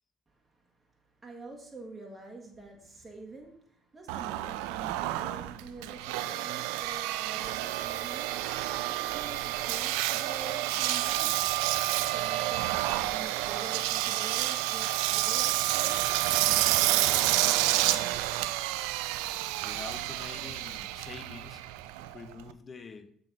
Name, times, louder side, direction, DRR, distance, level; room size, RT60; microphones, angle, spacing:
voice 1, 0.3-11.6 12.0-17.5, right 3 dB, 20° right, 0 dB, 1.7 m, -47 dB
Engine, 4.1-22.5, right 15 dB, 75° right, 0.3 m, -29 dB
voice 2, 19.6-21.6 22.1-23.1, left 5 dB, 35° left, 10 dB, 0.8 m, -46 dB
6.8 x 4.0 x 5.4 m, 0.65 s
hypercardioid pair, 60°, 0 cm